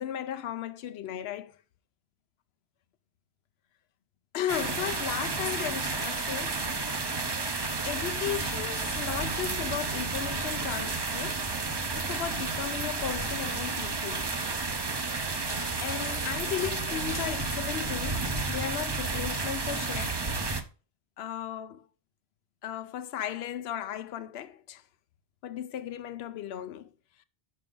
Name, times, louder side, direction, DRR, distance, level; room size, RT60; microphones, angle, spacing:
voice 1, 0.0-1.5 4.3-6.6 7.8-11.5 11.9-14.3 15.4-20.2 21.2-21.9 22.6-24.8 25.4-26.9, left 10 dB, 80° left, 0.9 m, -36 dB
sound 1, 4.5-20.6, right 3 dB, 30° right, 0.6 m, -31 dB
sound 2, 15.5-18.4, left 4 dB, 35° left, 0.6 m, -46 dB
6.7 x 6.0 x 3.7 m
omnidirectional pair, 1.0 m